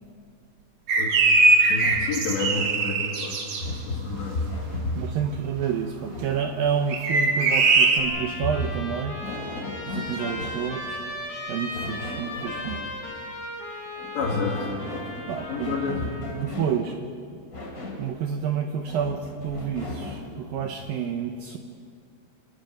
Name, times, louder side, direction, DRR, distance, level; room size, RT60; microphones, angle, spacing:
sound 1, 0.9-3.6 6.9-8.0, right 3 dB, 50° right, 2.3 m, -20 dB
voice 1, 1.7-3.4 3.6-4.9 11.7-12.0 14.1-14.7 15.5-16.0 20.6-20.7, left 4 dB, 70° left, -2 dB, 4.6 m, -30 dB
sound 2, 1.8-2.2 3.6-5.2 6.0-6.7 8.1-10.7 11.7-12.9 14.0-16.8 17.5-18.1 18.9-20.3, left 1 dB, 20° left, 2.9 m, -35 dB
voice 2, 5.0-9.2 9.9-11.0 11.5-12.9 15.3-16.0 16.3-16.9 18.0-21.6, right 7 dB, 75° right, 5 dB, 2.2 m, -29 dB
Trumpet, 7.3-16.5, left 1 dB, 55° left, 5.9 m, -37 dB
27.5 x 19.5 x 6.6 m, 2.3 s
omnidirectional pair, 5.2 m